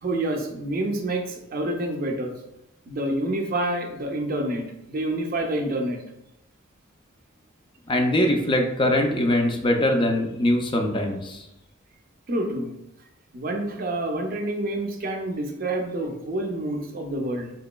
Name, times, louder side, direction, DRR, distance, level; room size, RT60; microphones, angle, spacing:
voice 1, 0.0-2.3 2.9-6.0 12.3-12.7 13.3-17.5, right 1 dB, 45° right, 3 dB, 0.5 m, -28 dB
voice 2, 7.9-11.4, left 1 dB, 25° left, 3 dB, 0.4 m, -22 dB
3.9 x 2.9 x 2.2 m, 0.89 s
head